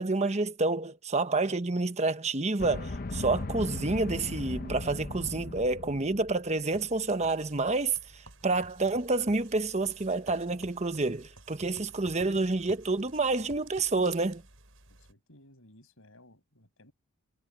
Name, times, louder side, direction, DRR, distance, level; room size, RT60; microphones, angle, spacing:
voice 1, 0.0-14.4, right 3 dB, 30° right, 1.1 m, -29 dB
sound 1, 2.6-6.5, left 2 dB, 40° left, 0.8 m, -37 dB
sound 2, 6.7-15.1, right 3 dB, 65° right, 7.6 m, -53 dB
voice 2, 14.9-16.9, left 1 dB, 70° left, 7.1 m, -58 dB
head